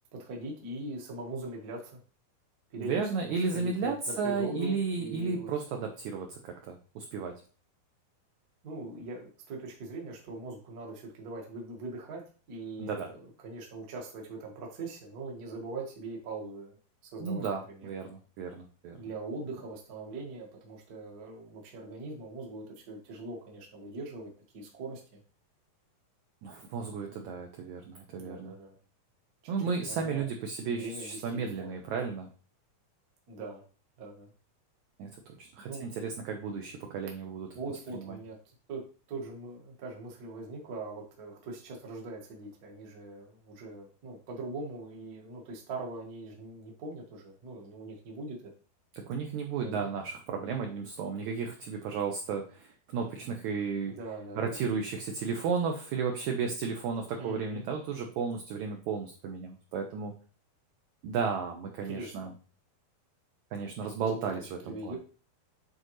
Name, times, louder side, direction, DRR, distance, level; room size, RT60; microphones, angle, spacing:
voice 1, 0.1-2.0 2.7-5.5 8.6-12.2 12.5-16.7 17.0-17.9 19.0-25.2 26.9-27.3 28.2-28.8 29.6-30.3 30.7-31.8 33.3-33.6 34.0-34.3 35.7-35.8 37.5-38.8 39.1-48.5 49.6-49.9 53.9-54.6 57.2-57.7 61.8-62.1 64.1-65.0, right 2 dB, 60° right, -1 dB, 0.9 m, -41 dB
voice 2, 2.8-7.3 12.8-13.1 17.2-19.0 26.4-28.5 29.5-32.3 35.0-37.5 37.9-38.2 48.9-53.9 54.4-60.1 61.0-62.3 63.5-64.9, right 5 dB, 90° right, 3 dB, 1.6 m, -34 dB
8.7 x 3.9 x 3.1 m, 0.39 s
omnidirectional pair, 4.3 m